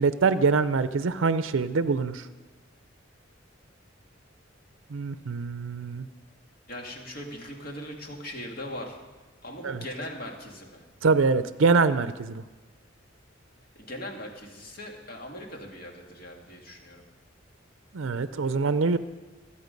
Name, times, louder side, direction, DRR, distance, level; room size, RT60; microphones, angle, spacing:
voice 1, 0.0-2.2 4.9-6.1 9.6-9.8 11.0-12.4 17.9-19.0, right 4 dB, 75° right, 13 dB, 0.5 m, -24 dB
voice 2, 6.7-9.0 9.4-10.8 13.8-17.0, left 1 dB, 50° left, 1 dB, 2.2 m, -40 dB
21.5 x 8.6 x 5.2 m, 1.2 s
head